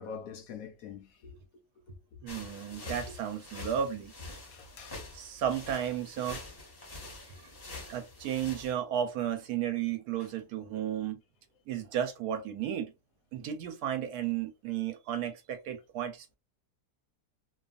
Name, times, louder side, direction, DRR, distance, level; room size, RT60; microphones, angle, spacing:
voice 1, 0.0-1.4 1.9-2.0 2.2-2.4 2.9-3.2 4.5-5.0 10.2-10.3, left 6 dB, 70° left, 0.9 m, -45 dB
voice 2, 2.2-4.1 5.1-6.4 7.9-11.2 11.7-12.9 13.3-16.4, right 9 dB, 75° right, 1.1 m, -33 dB
sound 1, 2.3-8.7, left 2 dB, 30° left, 0.7 m, -46 dB
2.7 x 2.3 x 2.4 m
omnidirectional pair, 1.7 m